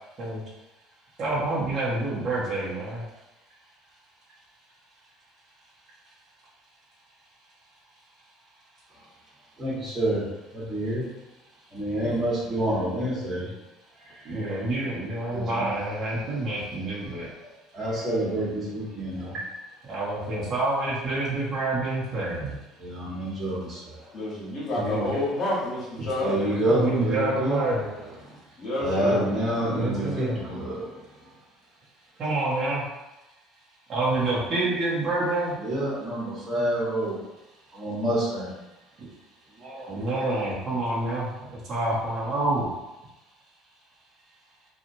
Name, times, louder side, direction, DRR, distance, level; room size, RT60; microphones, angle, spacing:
voice 1, 1.2-3.0 12.0-12.2 14.2-17.3 19.9-22.5 24.8-25.2 26.7-27.9 28.9-29.2 29.7-30.4 32.2-32.8 33.9-35.6 39.9-41.3 41.7-42.7, right 2 dB, 40° right, -8 dB, 1.0 m, -27 dB
voice 2, 9.6-10.2 10.5-11.1 11.7-13.5 14.2-14.8 15.3-15.8 17.7-19.3 22.8-24.0 26.1-27.7 28.8-31.0 35.6-37.2 37.7-38.5 39.6-39.9, right 1 dB, 25° right, -8 dB, 1.4 m, -28 dB
voice 3, 24.1-26.3 28.6-29.2, left 1 dB, 45° left, -8 dB, 1.1 m, -28 dB
2.9 x 2.4 x 2.7 m, 1.0 s
supercardioid pair, 110°, 0 cm